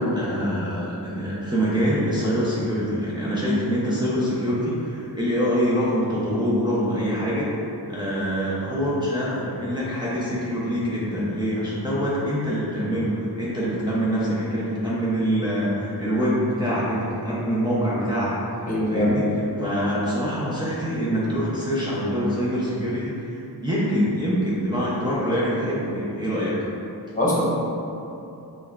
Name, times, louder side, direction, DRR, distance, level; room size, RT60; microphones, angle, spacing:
voice 1, 0.2-7.5 7.9-18.3 18.6-19.2 19.6-26.7, equal, 10° right, -9 dB, 0.5 m, -25 dB
voice 2, 18.7-19.2 27.1-27.4, left 1 dB, 20° left, -7 dB, 0.8 m, -22 dB
6.2 x 2.3 x 2.3 m, 2.8 s
wide cardioid pair, 160°, 38 cm